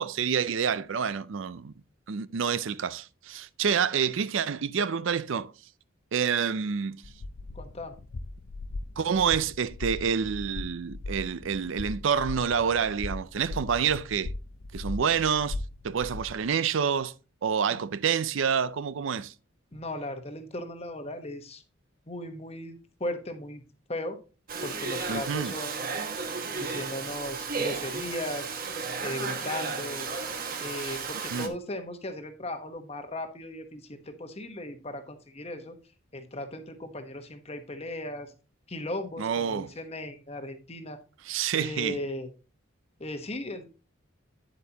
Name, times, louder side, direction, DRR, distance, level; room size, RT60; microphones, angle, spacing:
voice 1, 0.0-1.7 2.1-5.5 6.1-7.0 9.0-14.3 14.7-15.6 15.8-17.1 17.4-19.3 25.1-25.5 31.3-31.5 39.2-39.7 41.3-42.0, right 7 dB, 65° right, 0.4 m, -28 dB
sound 1, 7.0-16.5, left 2 dB, 75° left, 0.6 m, -39 dB
voice 2, 7.5-8.0 17.7-17.8 19.7-21.6 22.1-23.6 23.9-24.2 24.6-25.8 26.5-28.5 29.0-30.1 30.6-35.8 36.1-38.3 38.7-41.0 41.5-42.3 43.0-43.7, left 1 dB, 30° left, 1.0 m, -37 dB
Domestic sounds home sounds, 24.5-31.5, right 4 dB, 45° right, 1.1 m, -34 dB
9.3 x 8.1 x 2.8 m
head